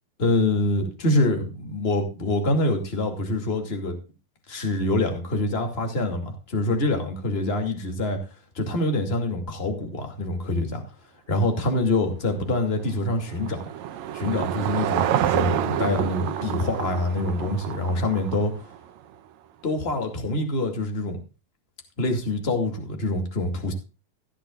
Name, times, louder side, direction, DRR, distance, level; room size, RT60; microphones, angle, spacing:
voice 1, 0.2-4.0 4.5-8.2 8.5-10.8 11.3-13.6 14.1-18.5 19.6-21.2 22.0-23.7, left 2 dB, 20° left, 4 dB, 2.2 m, -25 dB
Car passing by / Engine, 12.5-19.0, right 11 dB, 75° right, 1.7 m, -28 dB
16.0 x 10.5 x 2.4 m, 0.32 s
omnidirectional pair, 3.9 m